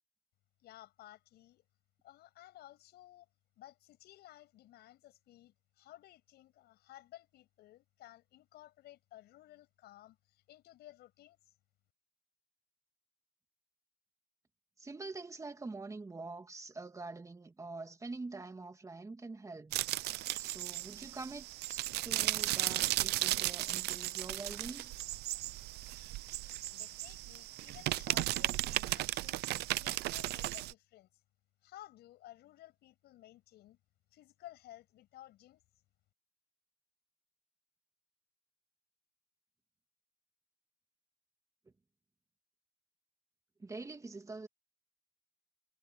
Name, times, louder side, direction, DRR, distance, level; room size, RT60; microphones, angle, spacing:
voice 1, 0.6-1.6 2.0-3.3 3.6-11.5 26.7-29.5 29.8-31.1 31.6-33.8 34.1-35.6, left 14 dB, 75° left, 6.8 m, -56 dB
voice 2, 14.8-19.8 20.4-24.9 43.6-44.5, right 3 dB, 20° right, 2.7 m, -45 dB
sound 1, 19.7-30.7, right 17 dB, 75° right, 0.6 m, -35 dB
cardioid pair, 110°, 17 cm